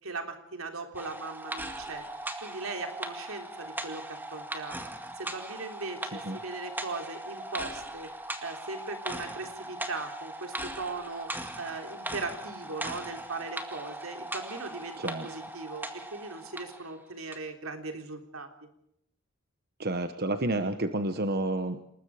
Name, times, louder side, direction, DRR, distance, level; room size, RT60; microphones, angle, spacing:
voice 1, 0.0-2.1 2.4-4.8 5.2-8.1 8.4-11.3 11.6-18.5, right 3 dB, 80° right, 5 dB, 3.6 m, -39 dB
sound 1, 0.9-16.9 17.3-17.4, right 1 dB, 10° right, 2.0 m, -39 dB
voice 2, 19.8-21.8, right 2 dB, 50° right, 9 dB, 1.2 m, -30 dB
28.0 x 20.5 x 5.0 m, 0.78 s
head